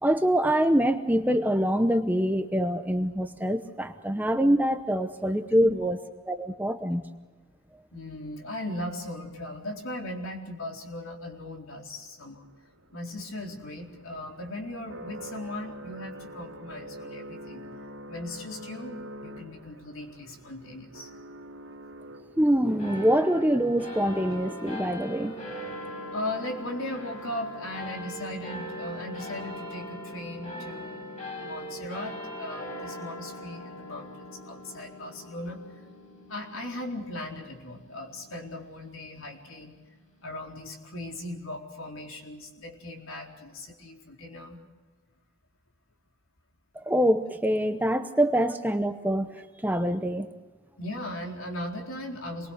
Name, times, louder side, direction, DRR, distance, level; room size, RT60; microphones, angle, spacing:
voice 1, 0.0-7.1 22.4-25.3 46.7-50.3, equal, 10° right, 8 dB, 0.8 m, -25 dB
voice 2, 7.9-12.5 12.9-17.6 18.1-21.1 26.1-35.6 36.3-39.8 40.2-44.6 50.8-52.5, left 1 dB, 70° left, 1 dB, 4.2 m, -38 dB
sound 1, 12.1-28.3, right 1 dB, 75° right, 3.1 m, -46 dB
sound 2, 22.8-39.5, equal, 35° left, 5.5 m, -41 dB
27.0 x 21.5 x 6.5 m, 1.3 s
head